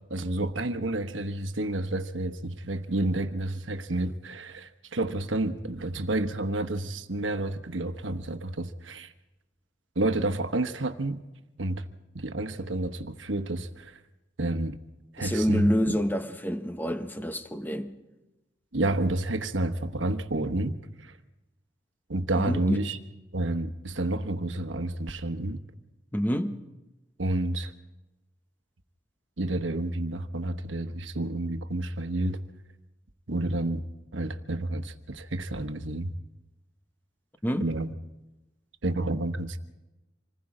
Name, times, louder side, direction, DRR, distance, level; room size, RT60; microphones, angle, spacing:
voice 1, 0.1-9.1 10.0-11.2 11.6-11.8 12.1-14.0 14.4-14.8 15.1-15.7 18.7-21.1 22.1-23.0 23.3-25.6 27.2-27.7 29.4-32.4 33.3-33.8 34.1-36.1 37.6-37.9 38.8-39.6, right 2 dB, 85° right, 1.2 m, -30 dB
voice 2, 15.2-17.9 22.3-22.8 26.1-26.6 37.4-37.7, equal, 10° left, 1.0 m, -27 dB
26.5 x 20.0 x 5.0 m
head